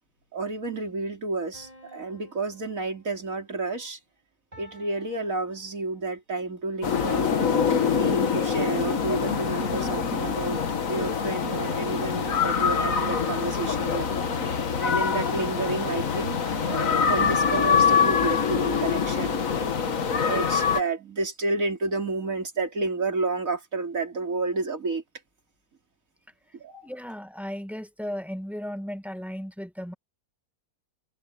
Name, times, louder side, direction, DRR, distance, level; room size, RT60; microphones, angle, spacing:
voice 1, 0.3-4.0 4.6-7.4 7.8-10.6 10.9-19.4 20.0-25.0 26.5-26.9, right 3 dB, 60° right, 3.9 m, -31 dB
sound 1, 1.5-3.5 4.5-6.2 7.5-9.1 10.5-12.2 13.5-15.1 16.5-18.9, equal, 25° right, 5.6 m, -53 dB
sound 2, 6.8-20.8, left 6 dB, 60° left, 1.8 m, -25 dB
voice 2, 26.8-29.9, equal, ahead, 1.1 m, -35 dB
omnidirectional pair, 1.6 m